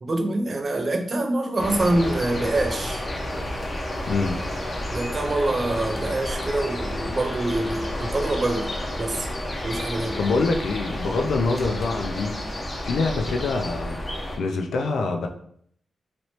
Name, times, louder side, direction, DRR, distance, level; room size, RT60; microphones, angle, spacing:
voice 1, 0.0-3.0 4.9-8.7 9.0-9.3 9.6-10.2, right 2 dB, 35° right, 5 dB, 0.4 m, -25 dB
sound 1, 1.6-14.4, left 1 dB, 30° left, 0.6 m, -31 dB
voice 2, 4.1-4.4 10.2-12.4 12.8-14.0 14.4-15.3, left 3 dB, 80° left, 4 dB, 0.4 m, -25 dB
3.0 x 3.0 x 2.8 m, 0.67 s
wide cardioid pair, 120°, 0 cm